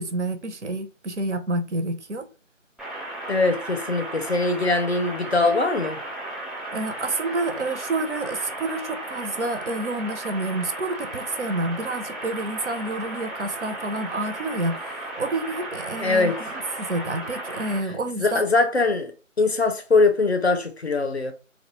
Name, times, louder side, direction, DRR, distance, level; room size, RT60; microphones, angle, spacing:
voice 1, 0.0-2.3 6.7-18.4, right 2 dB, 60° right, 0.5 m, -29 dB
sound 1, 2.8-17.8, right 1 dB, ahead, 0.4 m, -35 dB
voice 2, 3.3-6.0 16.0-16.4 18.2-21.3, left 3 dB, 55° left, 0.5 m, -22 dB
2.1 x 2.0 x 2.9 m
figure-of-eight pair, 170°, 39 cm